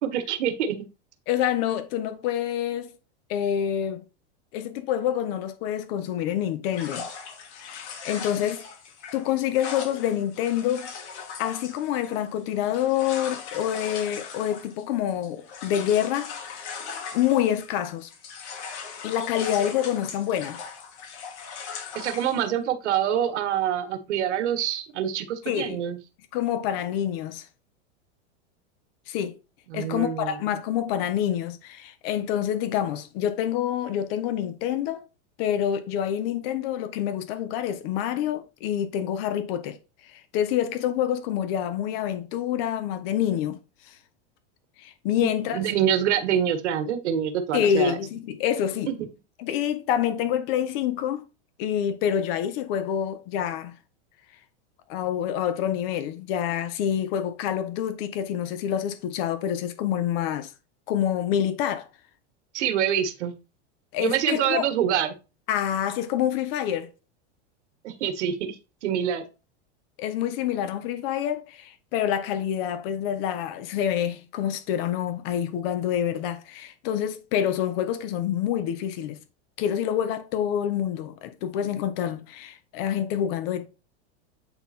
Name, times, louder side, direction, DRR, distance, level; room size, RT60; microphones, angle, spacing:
voice 1, 0.0-0.8 21.9-26.0 29.7-30.4 45.2-48.0 48.8-48.9 62.5-63.3 64.0-65.1 67.8-68.5 68.8-69.2, right 9 dB, 80° right, 1.7 m, -26 dB
voice 2, 1.3-2.9 3.3-4.0 4.5-7.1 7.5-8.6 9.1-10.9 11.4-16.8 17.1-18.1 19.0-20.6 25.4-25.8 26.3-27.5 29.1-29.4 29.7-35.0 35.4-39.8 40.0-43.6 43.9-44.0 44.8-45.6 47.5-48.9 49.4-51.2 51.6-53.7 54.9-60.5 60.9-61.9 63.9-64.6 65.5-66.9 70.0-79.2 79.6-83.7, left 10 dB, 55° left, 1.2 m, -27 dB
sound 1, 6.7-17.8 18.1-22.4, left 6 dB, 70° left, 2.5 m, -39 dB
8.6 x 3.9 x 4.3 m
supercardioid pair, 130°, 35 cm